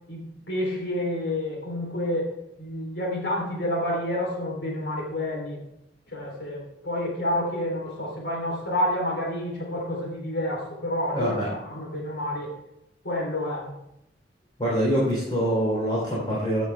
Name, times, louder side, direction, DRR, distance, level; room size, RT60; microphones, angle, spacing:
voice 1, 0.1-5.6 6.1-11.3 11.7-12.5 13.0-13.8, left 1 dB, 80° left, -1 dB, 3.4 m, -29 dB
voice 2, 11.1-11.5 14.6-16.6, equal, 30° left, -4 dB, 3.1 m, -24 dB
15.5 x 8.0 x 3.4 m, 0.85 s
head